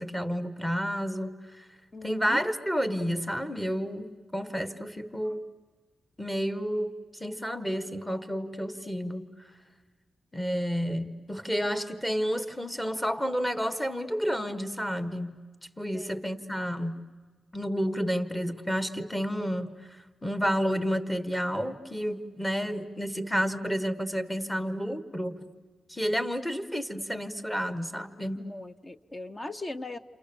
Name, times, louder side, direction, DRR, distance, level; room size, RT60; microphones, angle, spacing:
voice 1, 0.0-1.7 2.0-5.4 6.2-9.3 10.3-15.4 15.8-17.0 17.5-25.4 25.9-28.4, equal, 10° left, 9 dB, 1.4 m, -30 dB
voice 2, 1.9-2.4 15.9-16.2 28.3-30.0, left 2 dB, 25° left, 11 dB, 0.8 m, -39 dB
29.0 x 28.0 x 7.0 m, 1.4 s
cardioid pair, 80°, 0 cm